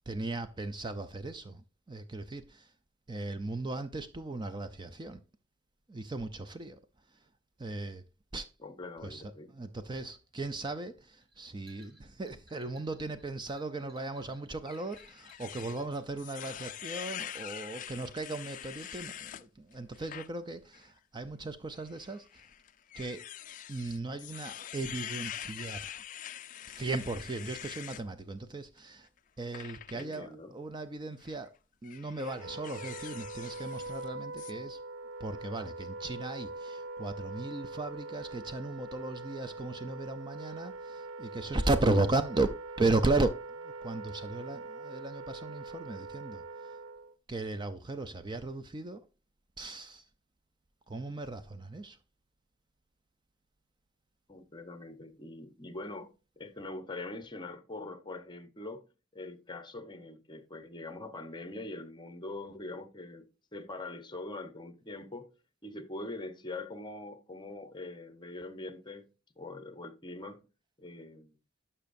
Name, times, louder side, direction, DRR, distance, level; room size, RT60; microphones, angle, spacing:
voice 1, 0.1-2.7 3.1-5.2 5.9-6.8 7.6-8.0 8.3-8.5 9.0-22.4 22.9-23.3 23.7-25.9 26.7-29.1 29.4-31.5 31.8-34.8 35.2-42.5 42.8-46.7 47.3-49.0 49.6-50.0 50.9-52.0, right 2 dB, 20° right, 0.4 m, -36 dB
voice 2, 8.6-9.5 29.9-30.5 54.3-65.3 65.6-69.1 69.4-70.4 70.8-71.4, left 2 dB, 25° left, 0.9 m, -43 dB
sound 1, 9.9-16.1, right 1 dB, 50° right, 2.8 m, -62 dB
sound 2, 14.7-19.4 19.9-20.3 20.7-20.9 21.9-28.0 29.5-30.2 31.1-31.4 31.8-34.1 34.4-34.5, left 11 dB, 40° left, 0.3 m, -44 dB
Wind instrument woodwind instrument, 32.3-47.2, right 3 dB, 85° right, 0.6 m, -43 dB
12.0 x 5.6 x 2.6 m
head